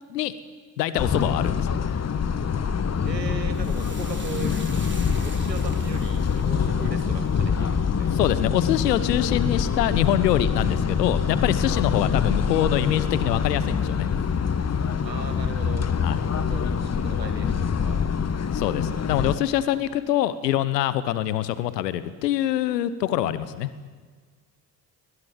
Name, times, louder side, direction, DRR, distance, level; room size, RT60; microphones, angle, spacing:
voice 1, 0.8-1.8 8.2-14.1 16.0-16.2 18.5-23.7, left 12 dB, 80° left, 15 dB, 1.1 m, -24 dB
sound 1, 1.0-19.4, left 6 dB, 30° left, 1.4 m, -25 dB
sound 2, 2.5-17.3, right 4 dB, 45° right, 6.5 m, -46 dB
voice 2, 3.0-4.6 5.2-8.2 15.0-15.9 16.3-18.0 19.7-19.8, right 4 dB, 90° right, 7 dB, 1.8 m, -38 dB
sound 3, 3.5-12.1 12.4-13.1 13.4-13.6, right 3 dB, 25° right, 3.1 m, -47 dB
22.5 x 20.5 x 9.3 m, 1.5 s
figure-of-eight pair, 45°, 49 cm